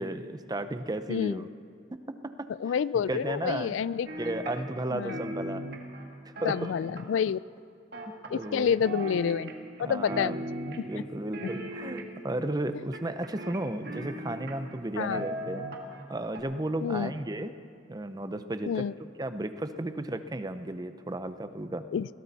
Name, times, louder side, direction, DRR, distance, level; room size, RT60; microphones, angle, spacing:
voice 1, 0.0-1.4 1.9-3.7 4.2-5.7 6.4-6.7 8.1-8.7 9.8-15.7 16.1-17.5 17.9-18.8 19.2-21.8, right 1 dB, 20° right, 10 dB, 0.6 m, -34 dB
voice 2, 1.1-1.4 2.6-4.1 4.9-5.2 6.4-7.4 8.3-9.5 9.8-10.4 11.0-11.1 15.0-15.2 16.8-17.1 18.7-18.9 21.9-22.1, left 7 dB, 80° left, 19 dB, 0.3 m, -28 dB
sound 1, 4.1-4.8 5.1-7.3 7.9-8.6 8.8-9.8 10.1-11.0 11.3-12.3 12.9-14.8 15.1-16.0 16.3-16.4, right 1 dB, 55° right, 1.7 m, -38 dB
21.0 x 17.0 x 4.2 m, 2.4 s
head